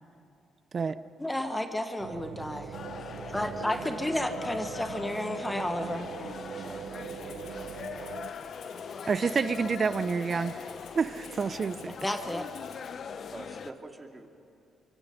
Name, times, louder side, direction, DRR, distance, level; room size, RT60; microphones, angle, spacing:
voice 1, 1.2-2.8 3.3-6.1 12.0-12.5, left 1 dB, 10° left, 7 dB, 1.3 m, -32 dB
sound 1, 2.0-8.3, right 9 dB, 75° right, 0.7 m, -41 dB
sound 2, 2.7-13.7, left 6 dB, 55° left, 0.9 m, -41 dB
voice 2, 3.2-3.9 6.5-7.6 13.3-14.3, right 2 dB, 20° right, 3 dB, 2.4 m, -46 dB
Rattle (instrument), 6.9-12.9, left 7 dB, 85° left, 2.7 m, -54 dB
voice 3, 9.1-10.5 10.9-11.9, right 5 dB, 40° right, 14 dB, 0.7 m, -28 dB
25.0 x 23.5 x 5.2 m, 2.5 s
cardioid pair, 90°, 0 cm